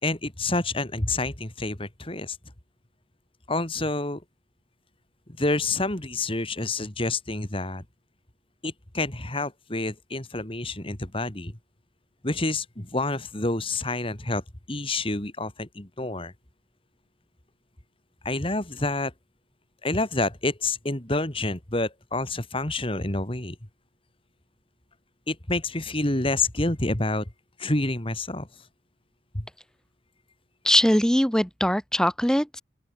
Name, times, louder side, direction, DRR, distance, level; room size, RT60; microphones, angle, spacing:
voice 1, 0.0-2.4 3.5-4.2 5.4-7.8 8.6-11.5 12.2-14.4 14.7-16.3 18.2-19.1 19.8-23.6 25.3-27.3 27.6-28.5 29.3-29.5, left 2 dB, 30° left, 2.6 m, -28 dB
voice 2, 30.6-32.6, equal, 5° left, 1.0 m, -21 dB
open air
head